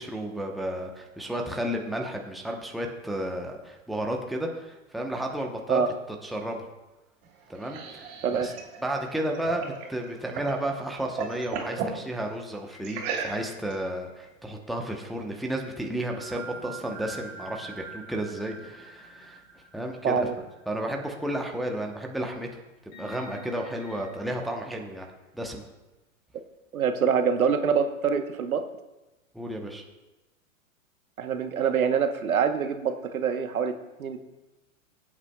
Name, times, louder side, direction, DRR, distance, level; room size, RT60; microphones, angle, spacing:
voice 1, 0.0-5.8 6.2-6.7 7.5-8.5 8.8-19.4 19.7-22.6 23.0-25.1 25.3-25.7 29.3-29.8, right 1 dB, ahead, 1 dB, 0.8 m, -32 dB
sound 1, 7.2-10.6 10.9-12.0 12.8-13.7, right 6 dB, 50° right, 2.7 m, -35 dB
sound 2, 12.7-14.7 16.2-21.0 21.5-21.6 22.9-24.2, right 3 dB, 50° left, 3.6 m, -46 dB
voice 2, 20.0-20.3 26.7-28.6 31.2-33.7 34.0-34.2, right 6 dB, 85° right, 8 dB, 1.1 m, -25 dB
20.0 x 8.5 x 2.3 m, 1.1 s
hypercardioid pair, 120°, 42 cm